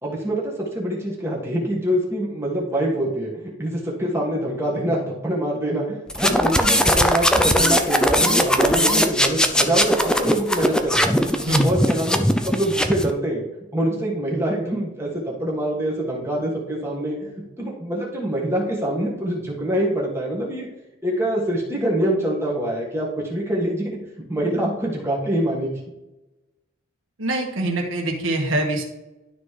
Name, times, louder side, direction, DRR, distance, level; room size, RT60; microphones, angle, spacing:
voice 1, 0.0-3.3 3.6-11.2 11.6-12.2 12.4-13.4 13.7-17.2 17.6-20.7 21.0-24.0 24.3-25.8, right 1 dB, 10° right, -3 dB, 1.6 m, -25 dB
sound 1, 6.1-13.1, equal, 5° left, 0.4 m, -19 dB
voice 2, 27.2-28.8, right 1 dB, 75° right, 1 dB, 1.7 m, -23 dB
12.0 x 4.1 x 3.3 m, 1.0 s
head